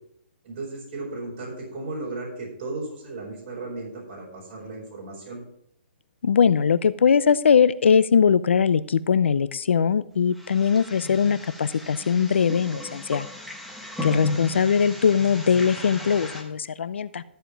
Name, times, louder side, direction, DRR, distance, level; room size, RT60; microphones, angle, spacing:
voice 1, 0.4-5.4 13.9-14.2, right 2 dB, 45° right, -3 dB, 4.7 m, -35 dB
voice 2, 6.2-13.3 14.0-17.2, left 6 dB, 90° left, 15 dB, 0.6 m, -21 dB
sound 1, 10.3-16.4, left 2 dB, ahead, 1.2 m, -36 dB
13.5 x 5.2 x 6.0 m, 0.69 s
hypercardioid pair, 160°, 6 cm